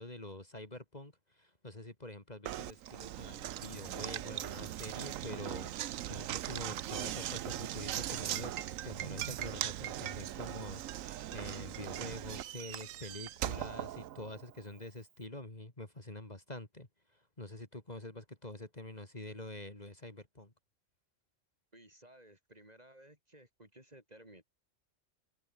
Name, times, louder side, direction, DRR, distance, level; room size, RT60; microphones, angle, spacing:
voice 1, 0.0-20.5, left 1 dB, 30° left, 3.3 m, -46 dB
Knock, 2.5-14.6, right 12 dB, 80° right, 1.1 m, -40 dB
voice 2, 21.7-24.5, right 1 dB, 30° right, 4.7 m, -57 dB
omnidirectional pair, 1.4 m